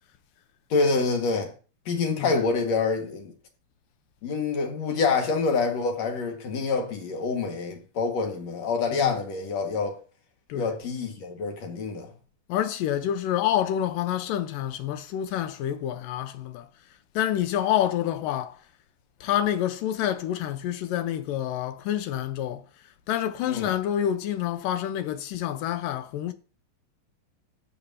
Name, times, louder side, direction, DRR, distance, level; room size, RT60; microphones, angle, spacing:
voice 1, 0.7-1.5 1.9-3.3 4.2-10.0 10.5-12.1 23.5-23.7, left 4 dB, 55° left, 2.8 m, -26 dB
voice 2, 2.0-2.3 8.9-9.2 10.5-10.7 12.5-16.7 17.1-18.6 19.2-22.6 23.1-26.3, left 11 dB, 75° left, 2.5 m, -28 dB
13.0 x 8.6 x 2.8 m
omnidirectional pair, 4.1 m